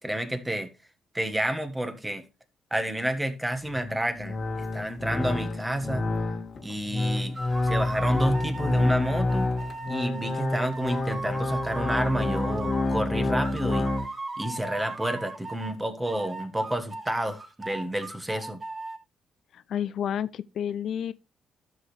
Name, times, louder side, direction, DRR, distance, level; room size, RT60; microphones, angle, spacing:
voice 1, 0.0-0.7 1.1-2.2 2.7-6.0 6.6-7.4 7.6-9.5 9.9-13.9 14.4-18.6, right 1 dB, 10° right, 1.5 m, -30 dB
sound 1, 3.6-14.1, left 2 dB, 45° left, 1.6 m, -28 dB
sound 2, 7.3-13.0 13.4-15.8 16.0-19.0, right 3 dB, 35° right, 1.9 m, -38 dB
voice 2, 19.5-21.1, left 9 dB, 65° left, 0.4 m, -30 dB
12.5 x 6.4 x 3.3 m
cardioid pair, 90°, 0 cm